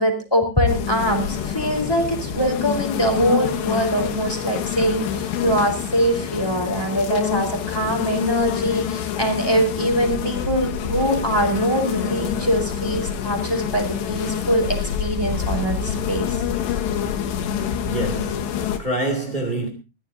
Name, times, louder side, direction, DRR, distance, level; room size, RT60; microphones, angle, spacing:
voice 1, 0.0-16.4, equal, 5° left, 3.8 m, -23 dB
sound 1, 0.7-18.8, left 9 dB, 75° left, 3.6 m, -26 dB
voice 2, 17.8-19.7, right 2 dB, 20° right, 1.2 m, -26 dB
22.0 x 15.5 x 2.7 m
omnidirectional pair, 5.1 m